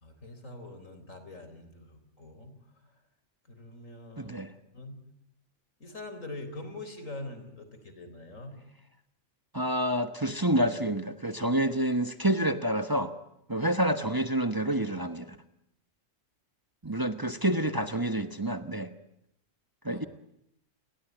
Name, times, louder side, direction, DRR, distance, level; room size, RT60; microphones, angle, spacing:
voice 1, 0.0-2.9 3.5-4.3 4.7-5.0 5.8-8.5 19.9-20.0, left 2 dB, 90° left, 10 dB, 4.4 m, -44 dB
voice 2, 4.2-4.5 9.5-13.1 13.5-15.3 16.8-18.9 19.8-20.0, right 1 dB, 15° right, 8 dB, 1.2 m, -28 dB
29.0 x 22.0 x 9.3 m, 0.78 s
omnidirectional pair, 1.3 m